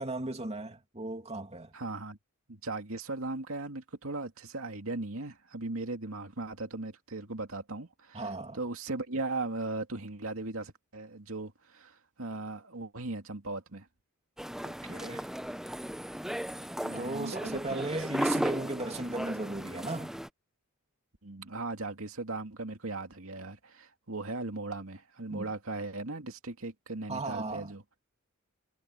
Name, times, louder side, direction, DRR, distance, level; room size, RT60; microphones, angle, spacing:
voice 1, 0.0-1.7 8.1-8.6 14.6-15.2 17.0-20.2 25.3-25.4 27.1-27.7, right 2 dB, 30° right, 2.6 m, -36 dB
voice 2, 1.7-2.2 2.5-13.9 15.1-15.3 16.8-17.8 21.2-27.8, right 2 dB, 70° right, 2.5 m, -38 dB
sound 1, 14.4-20.3, equal, ahead, 0.7 m, -36 dB
head